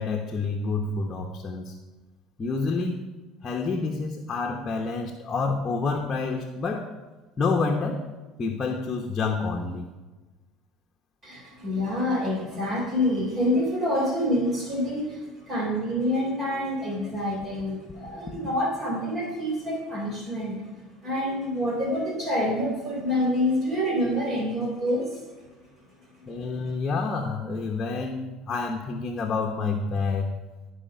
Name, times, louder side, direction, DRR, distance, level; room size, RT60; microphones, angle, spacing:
voice 1, 0.0-1.8 2.4-3.0 3.4-6.9 7.4-8.1 8.4-9.9 26.3-30.3, left 4 dB, 30° left, 1 dB, 1.0 m, -28 dB
voice 2, 11.2-20.7 21.0-25.2, left 1 dB, 30° right, -2 dB, 3.3 m, -27 dB
13.0 x 5.0 x 5.7 m, 1.2 s
supercardioid pair, 120°, 0 cm